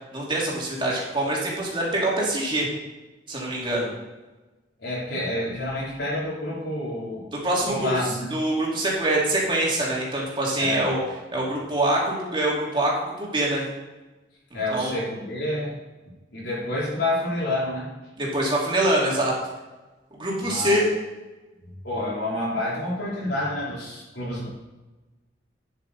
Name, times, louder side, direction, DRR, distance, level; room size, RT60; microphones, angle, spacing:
voice 1, 0.1-2.7 3.3-3.9 7.4-7.9 8.3-11.0 11.3-13.6 14.5-14.9 18.2-19.3 20.2-20.8, right 1 dB, 30° right, -4 dB, 2.9 m, -24 dB
voice 2, 4.8-7.3 7.6-8.3 10.6-10.9 14.5-15.8 16.3-17.9 20.4-20.9 21.6-24.5, left 1 dB, 80° left, -7 dB, 3.7 m, -28 dB
9.7 x 8.1 x 4.2 m, 1.2 s
head